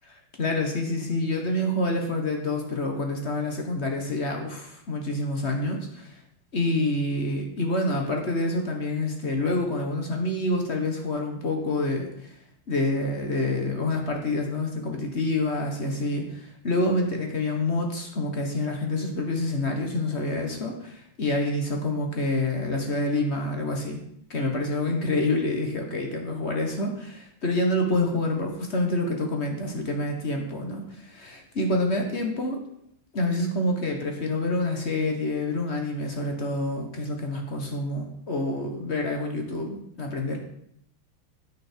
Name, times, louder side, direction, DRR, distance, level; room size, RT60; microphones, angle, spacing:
voice 1, 0.4-6.1 6.5-12.3 12.7-24.0 24.3-32.6 33.1-40.4, left 2 dB, 35° left, 3 dB, 1.4 m, -27 dB
9.4 x 9.4 x 4.6 m, 0.69 s
omnidirectional pair, 2.3 m